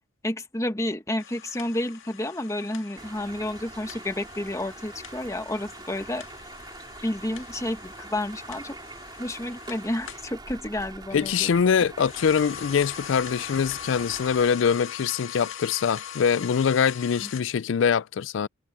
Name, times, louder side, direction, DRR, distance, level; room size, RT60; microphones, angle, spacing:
voice 1, 0.2-6.2 7.0-8.8 9.2-11.5 17.2-17.3, left 1 dB, 15° left, 1.3 m, -30 dB
sound 1, 1.2-10.3 11.9-17.4, left 9 dB, 90° left, 1.9 m, -42 dB
sound 2, 3.0-14.5, right 3 dB, 20° right, 3.0 m, -44 dB
voice 2, 11.1-18.5, left 6 dB, 70° left, 0.4 m, -23 dB
head